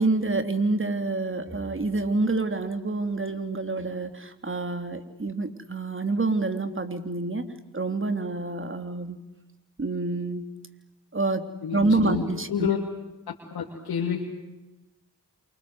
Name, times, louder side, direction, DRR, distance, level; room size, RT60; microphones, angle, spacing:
voice 1, 0.0-7.5 7.7-9.2 9.8-10.5 11.1-11.5 11.7-12.7, right 3 dB, 35° right, 8 dB, 3.3 m, -27 dB
voice 2, 11.6-12.2 12.5-12.8 13.5-14.2, left 8 dB, 80° left, -1 dB, 3.1 m, -28 dB
28.0 x 25.5 x 8.1 m, 1.0 s
supercardioid pair, 40°, 37 cm